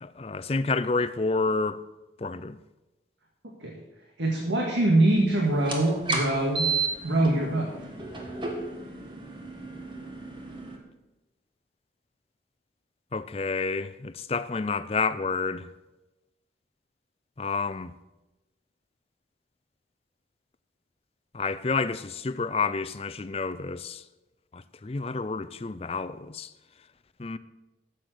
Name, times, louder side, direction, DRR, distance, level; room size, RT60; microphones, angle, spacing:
voice 1, 0.0-1.8 2.2-2.6 13.1-15.7 17.4-17.9 21.3-24.0 24.5-26.5 27.2-27.4, left 4 dB, 35° left, 0.5 m, -29 dB
voice 2, 4.2-6.7 7.0-7.7, right 1 dB, 90° right, 1.9 m, -23 dB
sound 1, 5.6-10.8, right 4 dB, 25° right, 1.6 m, -33 dB
12.0 x 7.8 x 6.6 m
head